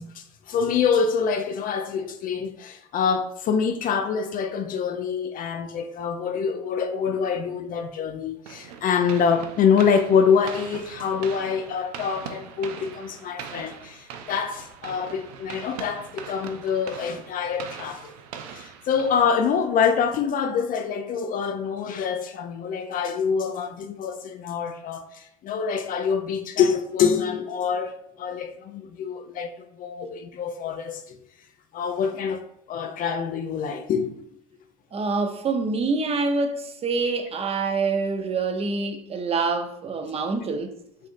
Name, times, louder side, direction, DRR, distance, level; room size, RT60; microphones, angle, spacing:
voice 1, 0.0-18.1 18.5-31.2 31.7-34.2, left 6 dB, 45° left, 0.5 m, -25 dB
sound 1, 8.5-19.7, right 7 dB, 80° right, 0.6 m, -41 dB
voice 2, 34.9-40.7, right 4 dB, 30° right, 0.7 m, -26 dB
6.5 x 2.6 x 2.6 m
hypercardioid pair, 80°, 19 cm